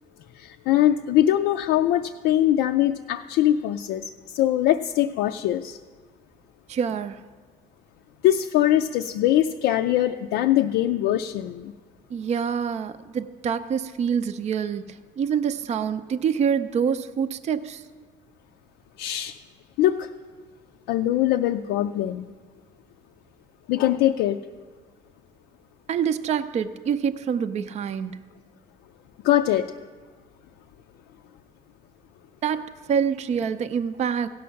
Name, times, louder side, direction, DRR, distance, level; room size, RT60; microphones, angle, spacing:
voice 1, 0.4-5.8 8.2-11.7 19.0-19.3 19.8-20.1 20.9-22.3 23.7-24.4 29.2-29.7, left 12 dB, 90° left, 4 dB, 0.4 m, -22 dB
voice 2, 6.7-7.2 12.1-14.8 15.2-17.8 25.9-28.2 32.4-34.3, right 7 dB, 40° right, 11 dB, 0.5 m, -26 dB
16.5 x 6.3 x 5.8 m, 1.5 s
cardioid pair, 110°, 17 cm